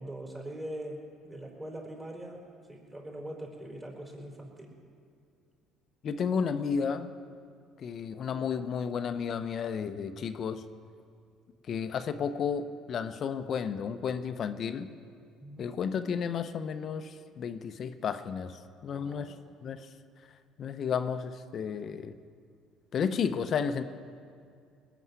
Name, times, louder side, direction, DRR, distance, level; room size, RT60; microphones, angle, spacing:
voice 1, 0.0-4.7 15.4-15.7 18.9-19.3, right 1 dB, 15° right, -1 dB, 4.8 m, -42 dB
voice 2, 6.0-7.1 7.8-10.7 11.7-14.9 15.6-19.3 19.6-19.9 20.6-22.1 22.9-23.8, left 6 dB, 50° left, 10 dB, 0.9 m, -32 dB
19.5 x 7.1 x 9.6 m, 2.3 s
supercardioid pair, 80°, 0 cm